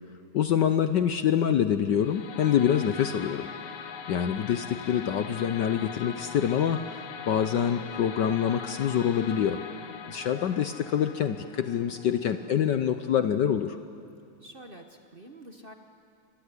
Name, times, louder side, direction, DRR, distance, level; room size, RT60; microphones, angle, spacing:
voice 1, 0.3-3.5 4.1-9.6 10.1-13.8, left 9 dB, 65° left, 10 dB, 1.2 m, -26 dB
sound 1, 1.9-13.0, left 7 dB, 80° left, 2.2 m, -42 dB
voice 2, 14.4-15.7, right 1 dB, 30° right, 5 dB, 1.3 m, -47 dB
25.5 x 21.5 x 9.8 m, 2.4 s
omnidirectional pair, 2.4 m